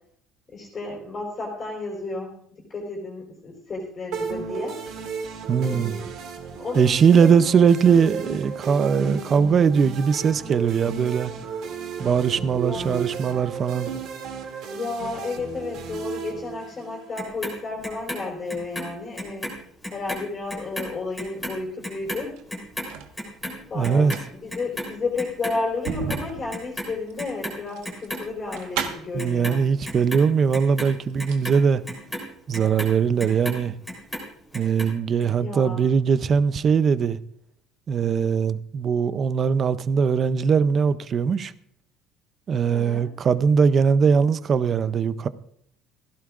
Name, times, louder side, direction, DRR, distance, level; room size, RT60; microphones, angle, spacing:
voice 1, 0.5-2.4 2.7-4.8 5.6-6.1 6.5-8.1 12.5-13.0 14.7-22.3 23.7-29.6 35.4-35.8 42.7-43.1, left 3 dB, 20° left, 3.8 m, -32 dB
sound 1, 4.1-17.2, right 6 dB, 50° right, 2.4 m, -34 dB
voice 2, 5.5-6.0 6.7-11.3 12.0-13.9 23.7-24.2 29.1-31.8 32.5-33.7 34.5-37.2 37.9-41.5 42.5-45.3, right 6 dB, 25° right, 0.5 m, -20 dB
Clock, 17.2-19.6 19.8-26.2 26.5-27.6 27.8-28.9 29.2-33.6 33.9-34.9 35.2-35.3, left 1 dB, 5° left, 3.5 m, -34 dB
sound 2, 22.4-23.1 23.9-29.3 30.2-30.3 30.7-31.5 31.8-31.9, right 7 dB, 90° right, 1.3 m, -35 dB
17.0 x 15.5 x 2.5 m
cardioid pair, 180°, 0 cm